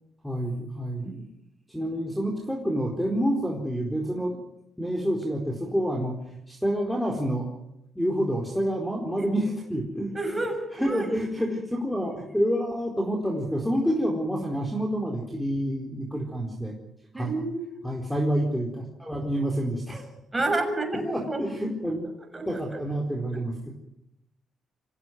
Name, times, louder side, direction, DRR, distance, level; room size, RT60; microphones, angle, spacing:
voice 1, 0.2-1.2 1.7-4.4 4.8-6.2 6.5-7.5 7.9-10.1 10.8-16.7 17.1-17.4 17.8-20.1 21.0-22.1 22.5-23.7, equal, ahead, 1 dB, 4.3 m, -28 dB
voice 2, 10.1-11.1 12.1-12.2 17.1-17.7 20.3-21.4 22.2-22.8 23.3-23.4, right 2 dB, 15° right, 5 dB, 6.9 m, -30 dB
25.0 x 17.0 x 9.5 m, 0.84 s
cardioid pair, 90°, 0 cm